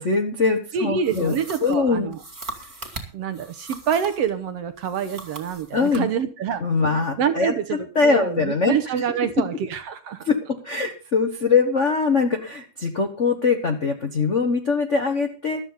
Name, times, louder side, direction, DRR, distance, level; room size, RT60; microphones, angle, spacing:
voice 1, 0.0-1.3 1.6-2.1 5.7-6.1 6.6-7.5 7.9-9.0 10.2-15.6, left 4 dB, 90° left, 5 dB, 0.6 m, -22 dB
voice 2, 0.7-2.2 3.1-7.6 8.0-10.3, right 8 dB, 65° right, 10 dB, 1.6 m, -26 dB
sound 1, 1.0-4.3 4.8-6.1, right 2 dB, 15° right, 2.2 m, -39 dB
15.0 x 12.5 x 4.0 m, 0.35 s
omnidirectional pair, 3.6 m